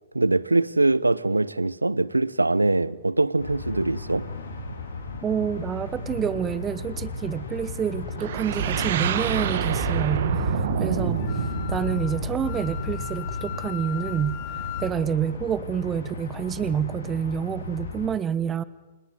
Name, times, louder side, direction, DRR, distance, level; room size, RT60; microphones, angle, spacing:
voice 1, 0.1-4.3, right 2 dB, 85° right, 0.8 m, -23 dB
sound 1, 3.4-18.1, left 2 dB, 70° left, 4.7 m, -34 dB
voice 2, 5.2-11.2 11.7-14.4 14.8-18.6, right 8 dB, 20° right, 1.3 m, -28 dB
sound 2, 8.2-13.0, right 9 dB, 55° right, 2.1 m, -28 dB
Wind instrument woodwind instrument, 11.2-14.9, left 13 dB, 40° left, 2.0 m, -38 dB
27.0 x 19.5 x 9.6 m
figure-of-eight pair, 105°, 0 cm